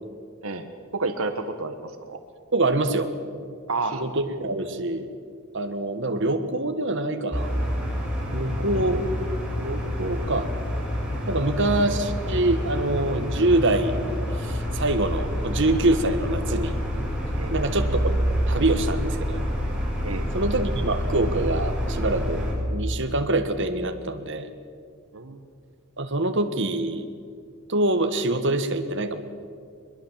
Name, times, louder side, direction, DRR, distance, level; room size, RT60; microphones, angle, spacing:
voice 1, 0.9-2.2 3.7-4.0 8.6-9.0 17.4-17.5 20.0-20.3 25.1-25.4, right 3 dB, 75° right, 8 dB, 1.4 m, -30 dB
voice 2, 2.5-3.1 3.9-5.1 5.5-7.8 8.3-9.0 9.6-10.6 11.3-13.9 14.4-16.8 17.5-18.1 18.5-19.5 20.3-24.5 26.0-27.0 27.7-29.2, right 2 dB, 60° right, 7 dB, 1.6 m, -25 dB
sound 1, 7.3-22.5, equal, 5° right, 6.3 m, -27 dB
22.5 x 21.5 x 7.5 m, 2.2 s
head